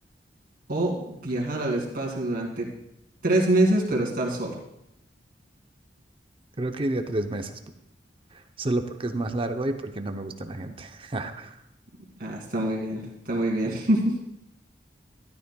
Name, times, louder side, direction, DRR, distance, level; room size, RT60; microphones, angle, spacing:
voice 1, 0.7-2.7 3.2-4.6 12.2-14.2, right 1 dB, 55° right, -2 dB, 2.6 m, -25 dB
voice 2, 6.6-7.6 8.6-11.5, right 2 dB, 30° right, 7 dB, 0.6 m, -30 dB
13.0 x 12.0 x 2.3 m, 0.81 s
head